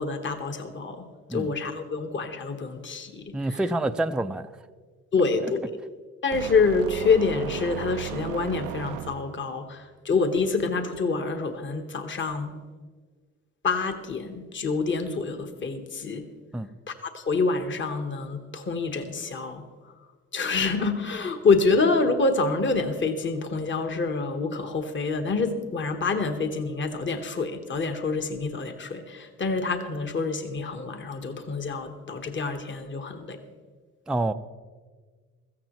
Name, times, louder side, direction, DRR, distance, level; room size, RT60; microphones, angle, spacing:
voice 1, 0.0-3.3 5.1-5.6 6.2-12.5 13.6-16.2 16.9-19.6 20.3-33.4, left 4 dB, 40° left, 7 dB, 1.3 m, -27 dB
voice 2, 3.3-4.5 5.4-5.5 16.5-16.7 34.1-34.3, right 2 dB, 5° right, 7 dB, 0.4 m, -27 dB
sound 1, 6.3-9.6, right 13 dB, 85° right, 0.5 m, -36 dB
16.0 x 14.5 x 3.1 m, 1.5 s
cardioid pair, 90°, 30 cm